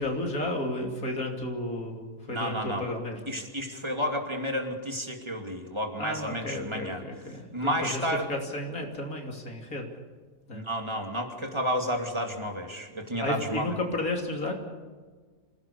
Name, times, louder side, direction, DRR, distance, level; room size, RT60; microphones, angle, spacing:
voice 1, 0.0-3.3 6.0-8.0 8.3-9.9 10.5-10.6 13.2-14.6, left 1 dB, 70° left, 1 dB, 3.4 m, -32 dB
voice 2, 2.3-2.9 3.3-7.0 7.5-8.3 10.5-13.7, equal, 20° right, 2 dB, 2.8 m, -31 dB
27.0 x 17.5 x 7.0 m, 1.4 s
omnidirectional pair, 1.6 m